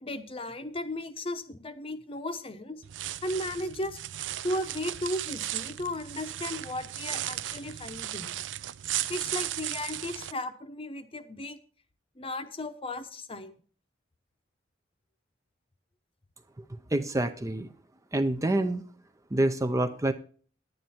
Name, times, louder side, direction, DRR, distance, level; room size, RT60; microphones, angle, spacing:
voice 1, 0.0-2.8 3.2-4.0 4.4-8.4 9.1-11.6 12.2-13.6, left 1 dB, 30° left, 10 dB, 0.8 m, -35 dB
sound 1, 2.8-10.3, right 13 dB, 75° right, 0.4 m, -36 dB
voice 2, 16.7-17.7 18.1-18.8 19.3-20.1, right 1 dB, 15° right, 8 dB, 0.5 m, -27 dB
10.5 x 9.3 x 4.2 m, 0.42 s
head